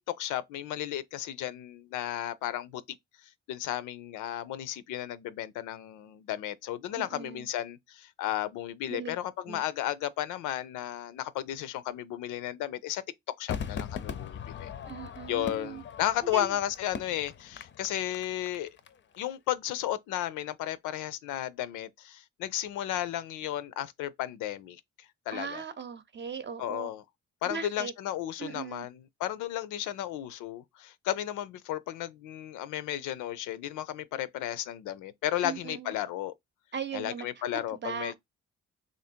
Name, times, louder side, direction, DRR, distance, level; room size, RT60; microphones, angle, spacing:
voice 1, 0.1-2.8 3.2-13.0 13.4-14.7 15.3-18.7 19.2-25.6 26.6-27.0 27.4-36.3 36.9-38.2, left 12 dB, 90° left, 0.5 m, -34 dB
voice 2, 7.0-7.5 8.9-9.2 9.5-9.6 14.9-15.8 16.2-16.6 25.3-26.9 27.4-27.9 28.4-28.9 35.4-35.9 36.7-37.3 37.7-38.2, right 6 dB, 35° right, 0.7 m, -38 dB
Crowd / Fireworks, 13.5-18.9 19.1-19.2, left 7 dB, 40° left, 0.5 m, -40 dB
3.0 x 2.6 x 4.3 m
cardioid pair, 90°, 30 cm